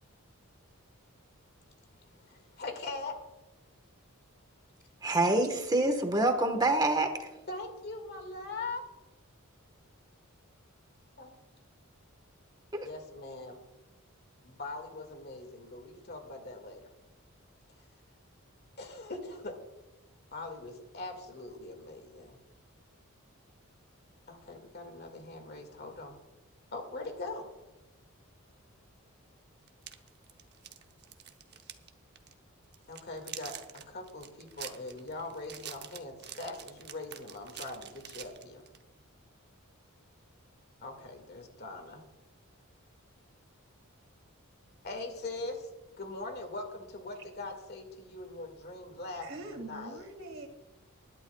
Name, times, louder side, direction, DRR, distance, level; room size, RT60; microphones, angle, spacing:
voice 1, 2.0-3.1 7.5-8.9 11.2-11.4 12.8-13.6 14.4-16.8 18.8-19.5 20.3-22.4 24.3-26.2 26.7-27.5 32.9-38.7 40.8-42.0 44.8-45.7 46.0-50.0, left 2 dB, 50° left, 5 dB, 2.0 m, -42 dB
voice 2, 5.0-7.4 12.7-12.9, right 2 dB, 20° right, 6 dB, 1.2 m, -27 dB
sound 1, 29.7-31.9 32.2-32.3 32.7-38.8, right 10 dB, 50° right, 0.8 m, -46 dB
voice 3, 49.2-50.5, right 2 dB, 65° right, 3 dB, 2.1 m, -43 dB
21.0 x 11.0 x 2.3 m, 1.0 s
head